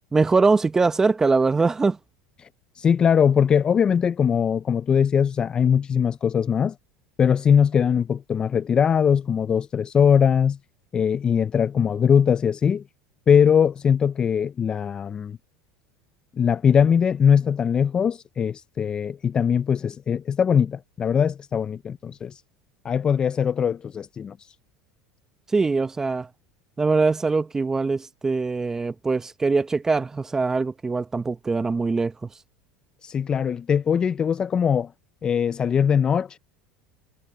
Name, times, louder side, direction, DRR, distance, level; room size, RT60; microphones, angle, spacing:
voice 1, 0.1-2.0 25.5-26.3 26.8-32.1, right 4 dB, 15° right, 0.7 m, -22 dB
voice 2, 2.8-6.7 7.2-10.6 10.9-12.8 13.3-15.4 16.4-22.4 22.8-24.4 33.0-34.9 35.2-36.4, left 7 dB, 25° left, 0.4 m, -21 dB
supercardioid pair, 125°, 3 cm